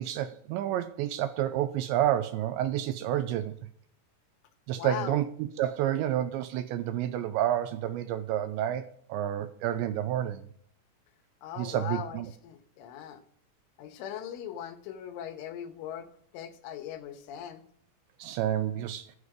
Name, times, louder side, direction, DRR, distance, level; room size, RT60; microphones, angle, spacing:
voice 1, 0.0-3.6 4.7-10.5 11.6-12.3 18.2-19.2, right 11 dB, 85° right, 2.7 m, -29 dB
voice 2, 4.7-5.2 11.4-13.2 13.8-16.1 16.3-17.6, left 10 dB, 75° left, 3.7 m, -39 dB
14.5 x 8.2 x 5.0 m
omnidirectional pair, 5.7 m